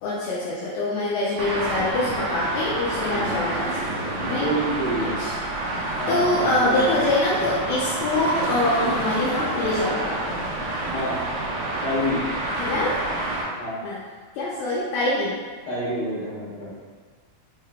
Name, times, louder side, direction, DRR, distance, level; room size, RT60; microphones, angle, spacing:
voice 1, 0.0-4.5 5.0-5.3 5.8-10.4 12.5-13.0 13.8-14.0 14.3-15.4, left 2 dB, 80° left, -7 dB, 1.9 m, -25 dB
Traffic noise roadway noise, 1.4-13.4, right 2 dB, 85° right, 1.0 m, -28 dB
voice 2, 3.0-3.4 4.2-5.1 6.0-7.0 10.9-11.2 11.8-12.2 13.5-13.8 15.7-16.7, equal, 50° left, -10 dB, 2.3 m, -28 dB
5.0 x 3.6 x 2.2 m, 1.6 s
omnidirectional pair, 3.4 m